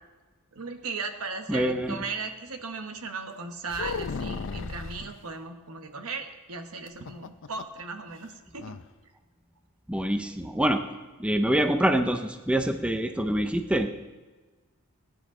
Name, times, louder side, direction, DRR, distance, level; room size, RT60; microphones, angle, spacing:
voice 1, 0.5-8.8, right 4 dB, 70° right, 6 dB, 1.2 m, -37 dB
voice 2, 1.5-2.0 9.9-10.8 11.2-13.9, right 1 dB, 5° right, 7 dB, 0.6 m, -25 dB
sound 1, 3.7-5.1 6.9-7.8 8.1-8.2 8.6-8.9, left 4 dB, 60° left, 0.6 m, -35 dB
18.5 x 10.0 x 3.8 m, 1.2 s
head